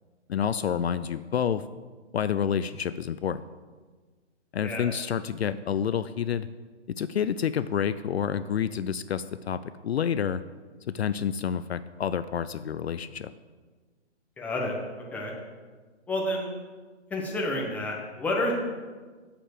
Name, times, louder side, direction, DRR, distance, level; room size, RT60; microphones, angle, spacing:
voice 1, 0.3-1.6 2.1-3.4 4.5-6.5 7.0-10.4 10.9-13.3, left 8 dB, 65° left, 13 dB, 0.5 m, -28 dB
voice 2, 14.4-14.7 15.1-15.3 16.1-16.5 17.1-18.5, left 1 dB, 5° left, -1 dB, 0.9 m, -29 dB
7.4 x 7.0 x 6.6 m, 1.4 s
hypercardioid pair, 145°, 35 cm